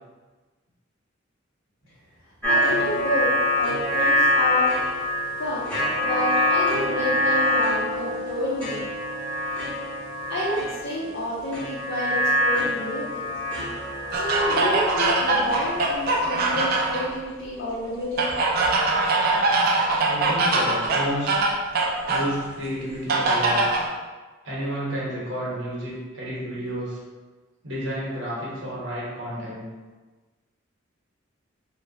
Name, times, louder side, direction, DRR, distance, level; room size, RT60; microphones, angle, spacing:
sound 1, 2.4-17.0, left 1 dB, 5° left, 0.8 m, -25 dB
voice 1, 2.5-4.8 5.4-8.8 10.3-13.3 14.1-18.4, equal, 75° left, -7 dB, 0.5 m, -30 dB
sound 2, 14.1-17.1 18.2-22.3 23.1-23.9, right 2 dB, 50° right, 0.3 m, -22 dB
voice 2, 20.0-21.4 22.1-23.6 24.4-27.0 27.6-29.6, equal, 85° right, -7 dB, 0.9 m, -31 dB
2.9 x 2.1 x 2.6 m, 1.3 s
head